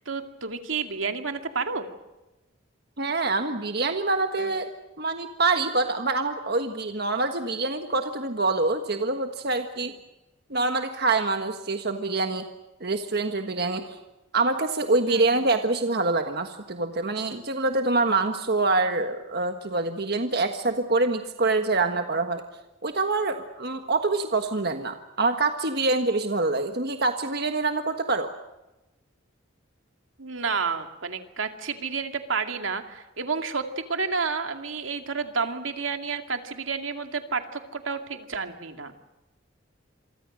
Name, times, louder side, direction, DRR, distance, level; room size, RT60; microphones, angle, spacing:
voice 1, 0.0-1.9 15.1-15.4 30.2-38.9, right 5 dB, 90° right, 6 dB, 2.4 m, -30 dB
voice 2, 3.0-4.7 5.0-9.9 10.5-12.5 12.8-14.0 14.3-22.4 22.8-28.3, right 3 dB, 55° right, 6 dB, 1.5 m, -25 dB
28.0 x 24.0 x 6.4 m, 1.0 s
head